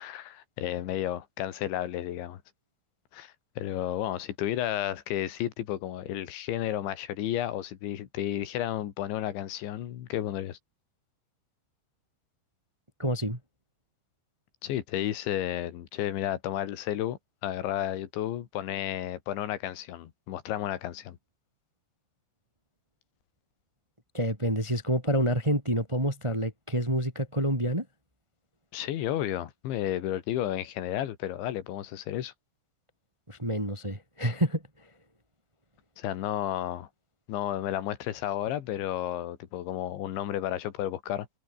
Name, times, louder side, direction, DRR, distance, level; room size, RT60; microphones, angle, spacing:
voice 1, 0.0-2.4 3.1-10.6 14.6-21.2 28.7-32.3 36.0-36.9 37.3-41.3, left 12 dB, 75° left, 4.2 m, -32 dB
voice 2, 13.0-13.4 24.1-27.8 33.3-34.6, equal, 5° right, 2.9 m, -28 dB
omnidirectional pair, 5.4 m